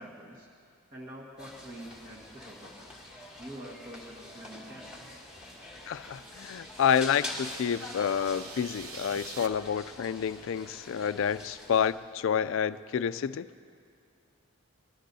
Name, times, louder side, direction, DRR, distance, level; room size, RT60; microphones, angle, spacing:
voice 1, 0.0-2.9 3.4-5.2, right 1 dB, 40° right, -5 dB, 1.6 m, -46 dB
sound 1, 1.4-11.9, left 1 dB, 5° right, 2.1 m, -45 dB
sound 2, 5.3-9.5, right 6 dB, 75° right, 0.8 m, -48 dB
voice 2, 5.9-13.5, left 7 dB, 60° left, 14 dB, 0.3 m, -29 dB
24.5 x 20.0 x 2.7 m, 2.4 s
head